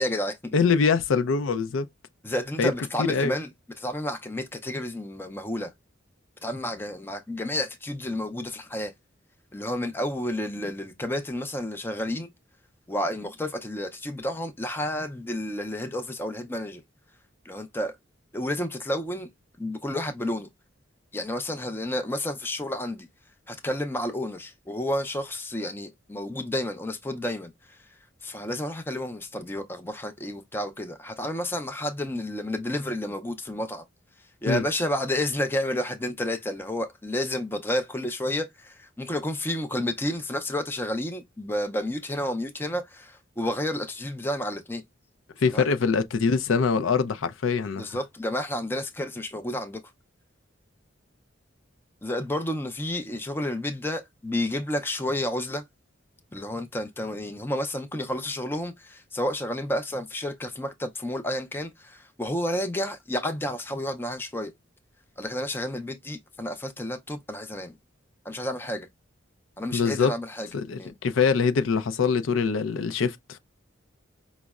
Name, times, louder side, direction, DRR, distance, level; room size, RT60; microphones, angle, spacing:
voice 1, 0.0-0.5 2.2-3.5 3.8-5.7 6.4-8.9 9.5-12.3 12.9-16.8 17.4-18.0 18.3-19.3 19.6-20.5 21.1-23.1 23.5-27.8 28.2-33.8 34.4-44.8 45.5-45.7 47.8-49.8 52.0-55.6 56.3-64.5 65.2-67.8 68.2-68.9 69.6-70.5 70.8-70.9, left 1 dB, 10° left, 0.4 m, -31 dB
voice 2, 0.5-1.9 2.6-2.7 3.0-3.3 34.5-34.6 45.4-47.8 69.7-70.1 70.5-73.4, left 5 dB, 85° left, 0.4 m, -24 dB
5.1 x 2.0 x 2.3 m
head